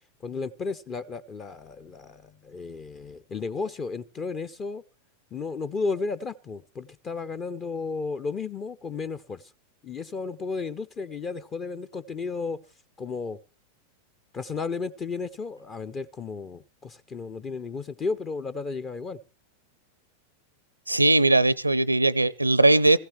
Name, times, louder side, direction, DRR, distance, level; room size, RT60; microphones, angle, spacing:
voice 1, 0.2-4.8 5.3-9.4 9.8-12.6 13.0-13.4 14.3-19.2, left 4 dB, 25° left, 0.8 m, -33 dB
voice 2, 20.9-23.0, right 2 dB, 85° right, 0.6 m, -19 dB
16.0 x 16.0 x 3.2 m
figure-of-eight pair, 90°, 0 cm